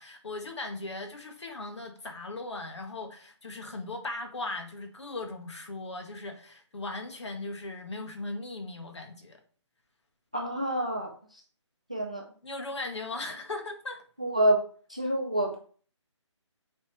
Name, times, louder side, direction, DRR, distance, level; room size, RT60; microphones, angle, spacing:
voice 1, 0.0-9.4 12.4-14.0, left 2 dB, 65° left, 1.8 m, -38 dB
voice 2, 10.3-11.1 11.9-12.2 14.2-14.6 14.9-15.6, right 1 dB, 15° right, 0.4 m, -27 dB
9.2 x 4.1 x 3.4 m
hypercardioid pair, 175°, 16 cm